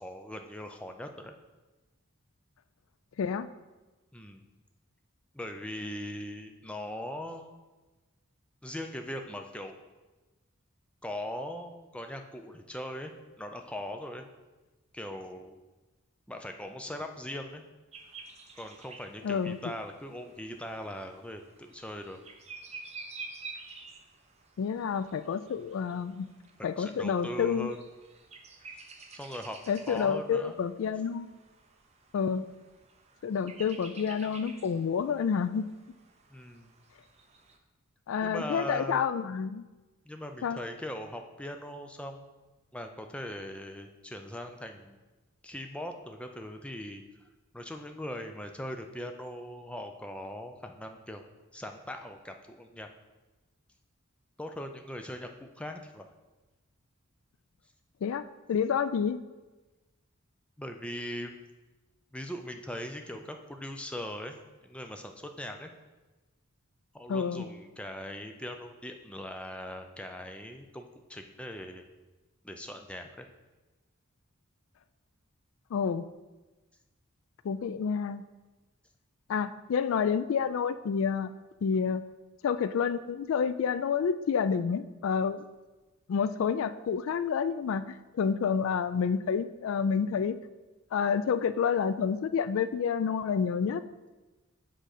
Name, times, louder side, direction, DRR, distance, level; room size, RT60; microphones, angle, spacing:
voice 1, 0.0-1.3 4.1-4.5 5.3-7.6 8.6-9.8 11.0-14.3 14.9-15.6 16.3-17.6 18.6-22.2 26.7-27.8 29.1-30.5 36.3-36.7 38.2-39.0 40.1-42.4 42.7-45.0 45.4-47.0 47.5-51.2 51.5-52.9 54.4-56.1 60.6-61.4 62.1-64.4 64.6-65.7 66.9-71.8 72.4-73.3, left 1 dB, 5° left, 5 dB, 0.5 m, -40 dB
voice 2, 3.2-3.5 19.2-19.7 24.6-26.3 26.6-27.7 29.7-31.3 32.1-32.4 33.2-35.7 38.1-39.6 40.4-40.6 58.0-59.2 67.1-67.4 75.7-76.1 77.4-78.2 79.3-81.3 81.6-82.0 82.4-85.5 86.1-90.4 90.9-93.8, left 6 dB, 70° left, 13 dB, 0.3 m, -29 dB
sound 1, 17.9-37.6, right 4 dB, 30° right, 0.7 m, -50 dB
7.5 x 3.8 x 6.5 m, 1.2 s
head